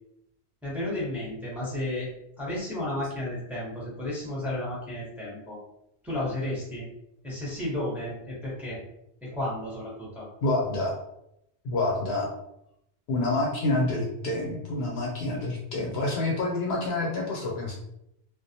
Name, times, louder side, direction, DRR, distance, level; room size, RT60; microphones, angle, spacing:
voice 1, 0.6-2.1 2.4-5.6 6.0-6.8 7.2-8.8 9.2-10.3, left 1 dB, ahead, -7 dB, 0.7 m, -32 dB
voice 2, 10.4-10.9 11.6-12.3 13.1-17.7, left 2 dB, 70° left, -2 dB, 0.9 m, -27 dB
2.4 x 2.0 x 2.6 m, 0.80 s
omnidirectional pair, 1.1 m